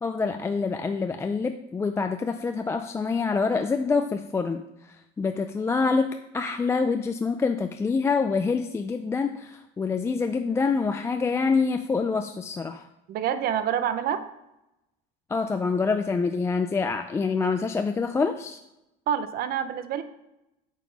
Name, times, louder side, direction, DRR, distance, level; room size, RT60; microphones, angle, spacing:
voice 1, 0.0-4.6 4.9-12.8 15.3-18.6, left 4 dB, 15° left, 6 dB, 0.3 m, -26 dB
voice 2, 13.1-14.2 19.1-20.0, right 9 dB, 45° right, 11 dB, 0.7 m, -27 dB
8.5 x 5.6 x 5.2 m, 0.90 s
cardioid pair, 145°, 21 cm